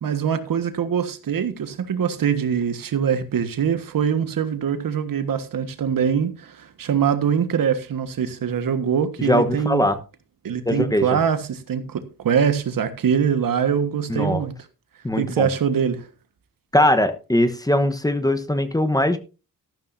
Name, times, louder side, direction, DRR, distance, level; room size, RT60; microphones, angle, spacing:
voice 1, 0.0-9.8 10.4-14.5 15.2-16.1, right 7 dB, 75° right, 1.5 m, -23 dB
voice 2, 9.2-10.0 10.7-11.2 14.1-14.4 15.0-15.5 16.7-19.2, left 1 dB, 10° left, 1.1 m, -20 dB
13.5 x 12.0 x 2.7 m
wide cardioid pair, 115°, 34 cm